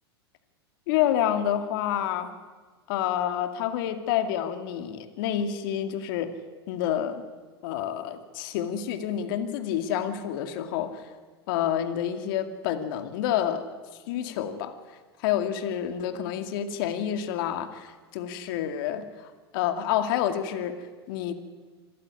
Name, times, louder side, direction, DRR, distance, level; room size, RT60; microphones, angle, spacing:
voice 1, 0.9-2.3 2.9-6.4 6.7-7.2 7.6-11.1 11.5-13.7 14.1-14.7 15.2-21.3, left 10 dB, 60° left, 8 dB, 2.3 m, -28 dB
25.5 x 14.5 x 9.8 m, 1.4 s
hypercardioid pair, 100°, 13 cm